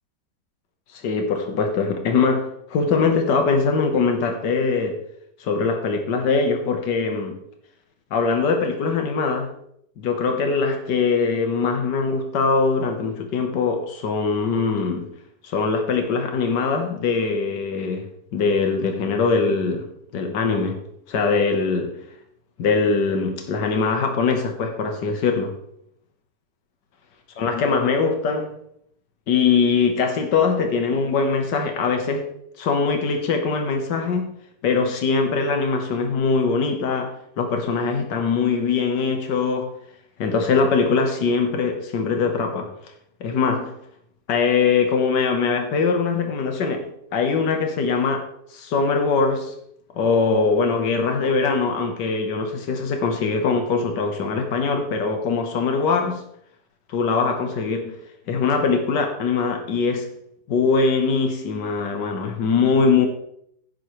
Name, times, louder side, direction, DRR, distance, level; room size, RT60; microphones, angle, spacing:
voice 1, 0.9-5.0 5.4-7.4 8.1-9.5 10.0-15.1 15.4-20.8 21.1-22.0 22.6-25.6 27.4-28.5 29.3-32.3 32.6-34.3 34.6-39.7 40.2-42.7 43.2-43.8 44.3-48.3 48.5-49.5 49.9-56.2 56.9-58.0 58.3-60.1 60.5-63.1, left 4 dB, 85° left, 1.8 m, -22 dB
11.0 x 9.1 x 3.2 m
omnidirectional pair, 1.8 m